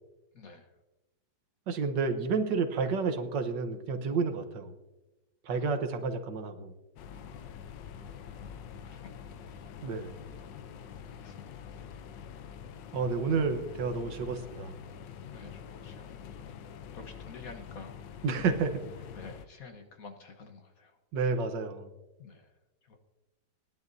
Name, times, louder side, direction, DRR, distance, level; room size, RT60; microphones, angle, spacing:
voice 1, 0.3-0.7 5.5-5.7 7.2-7.6 8.4-8.5 8.8-9.3 11.2-11.7 15.2-16.3 16.9-18.0 19.1-21.0 22.2-22.5 22.9-23.0, left 4 dB, 55° left, 6 dB, 1.4 m, -49 dB
voice 2, 1.7-4.7 5.5-6.7 9.8-10.1 12.9-14.7 18.2-18.8 21.1-21.9, right 4 dB, 75° right, 8 dB, 1.7 m, -30 dB
sound 1, 7.0-19.5, left 7 dB, 80° left, 1.4 m, -46 dB
20.5 x 11.0 x 2.7 m, 1.0 s
omnidirectional pair, 1.9 m